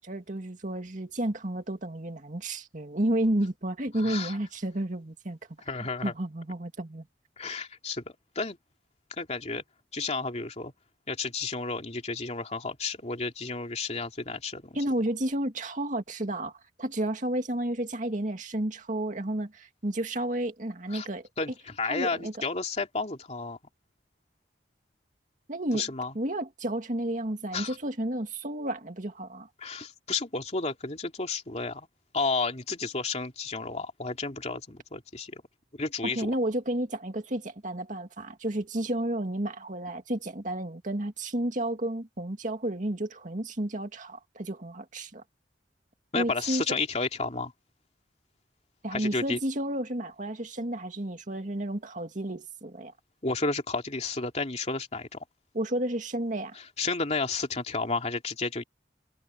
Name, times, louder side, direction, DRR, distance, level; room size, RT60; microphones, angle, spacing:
voice 1, 0.0-5.4 6.0-7.1 14.7-21.3 21.8-22.3 25.5-29.5 36.0-45.2 46.1-46.6 48.8-52.9 55.5-56.6, right 1 dB, 45° right, 2.2 m, -31 dB
voice 2, 3.9-4.3 5.7-6.1 7.4-8.6 9.2-9.6 9.9-10.7 11.1-14.8 20.9-21.1 21.4-23.6 25.7-26.1 27.5-27.8 29.6-31.9 32.1-35.4 35.7-36.3 46.1-47.5 48.9-49.4 53.2-55.2 56.6-58.6, left 3 dB, 40° left, 2.8 m, -32 dB
head